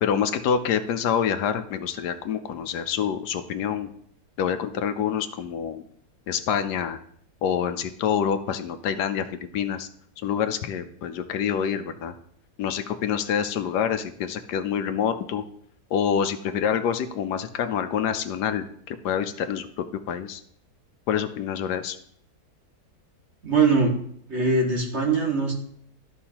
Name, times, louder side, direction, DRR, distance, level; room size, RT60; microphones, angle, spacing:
voice 1, 0.0-3.9 4.4-5.8 6.3-7.0 7.4-9.3 9.5-9.9 10.2-12.1 12.6-15.4 15.9-20.4 21.1-22.0, left 8 dB, 80° left, 9 dB, 1.2 m, -26 dB
voice 2, 23.4-23.9 24.3-25.5, right 4 dB, 40° right, -2 dB, 2.2 m, -21 dB
13.0 x 5.4 x 2.9 m, 0.65 s
omnidirectional pair, 1.8 m